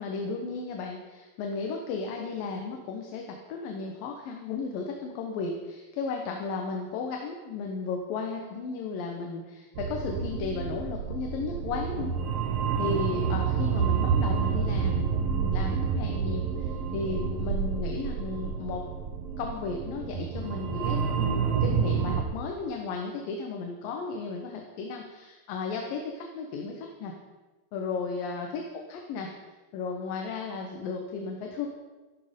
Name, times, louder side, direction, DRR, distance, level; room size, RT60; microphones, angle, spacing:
voice 1, 0.0-12.1 12.8-18.8 19.4-27.1 27.7-29.3 29.7-31.7, left 4 dB, 70° left, 2 dB, 2.8 m, -34 dB
sound 1, 9.8-22.2, right 6 dB, 75° right, 1.4 m, -29 dB
13.5 x 12.5 x 5.2 m, 1.2 s
omnidirectional pair, 4.3 m